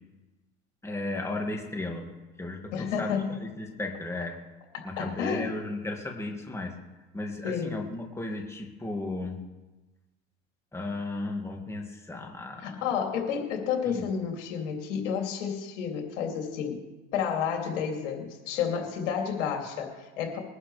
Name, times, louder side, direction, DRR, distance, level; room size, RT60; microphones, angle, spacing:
voice 1, 0.8-2.1 2.4-4.4 4.8-6.7 7.1-9.4 10.7-12.8 13.9-14.1, left 2 dB, 5° left, 1 dB, 2.0 m, -35 dB
voice 2, 2.7-3.4 4.7-5.5 7.4-7.8 12.6-16.8 17.1-20.4, left 7 dB, 90° left, 2 dB, 2.9 m, -31 dB
21.5 x 11.5 x 3.3 m, 1.1 s
supercardioid pair, 115°, 36 cm